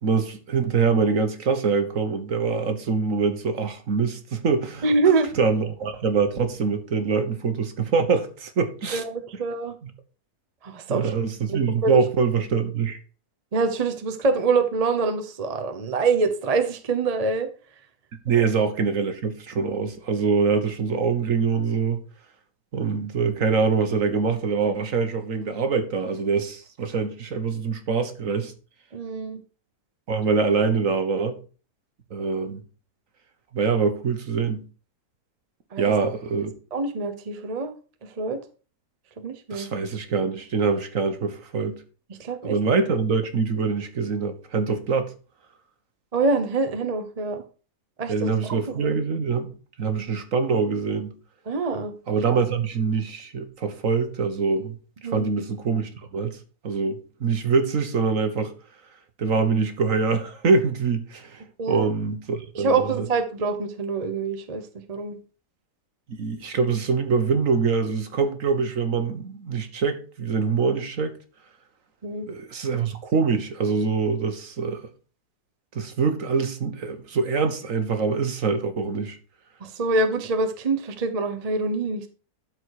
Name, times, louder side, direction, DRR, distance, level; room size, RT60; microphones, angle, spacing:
voice 1, 0.0-4.9 5.4-9.0 9.8-9.9 10.9-13.0 18.2-22.0 22.7-28.5 30.1-31.4 32.1-32.6 33.5-34.6 35.8-36.5 39.5-41.8 42.4-45.1 48.1-49.5 49.8-51.1 52.1-54.8 55.0-56.4 56.6-58.5 59.2-63.1 66.1-71.2 72.3-74.8 75.7-79.2, right 5 dB, 55° right, 1.5 m, -24 dB
voice 2, 4.8-5.3 8.9-9.7 10.6-11.1 11.5-11.9 13.5-17.5 18.4-18.5 28.9-29.4 35.7-35.9 36.7-37.7 38.2-38.4 39.2-39.7 42.2-42.6 46.1-47.4 48.0-49.0 51.5-51.9 55.0-55.2 61.6-61.9 62.5-65.2 72.0-72.3 79.6-82.1, right 3 dB, 30° right, 0.8 m, -25 dB
12.0 x 4.8 x 4.8 m
omnidirectional pair, 1.7 m